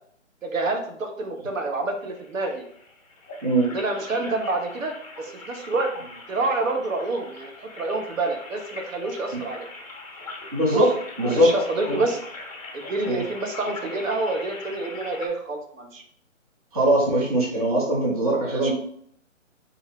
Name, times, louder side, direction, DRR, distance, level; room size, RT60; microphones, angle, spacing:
voice 1, 0.4-2.6 3.7-5.9 6.3-9.7 10.7-10.9 11.2-12.2 12.7-16.0 18.4-18.7, right 2 dB, 75° right, 4 dB, 0.8 m, -28 dB
sound 1, 2.0-15.3, left 3 dB, 30° left, 0.6 m, -41 dB
voice 2, 10.5-10.9 11.2-11.5 11.9-12.0 13.1-13.2 16.7-18.7, right 1 dB, 30° right, -4 dB, 0.6 m, -21 dB
3.0 x 2.7 x 2.6 m, 0.65 s
hypercardioid pair, 165°, 39 cm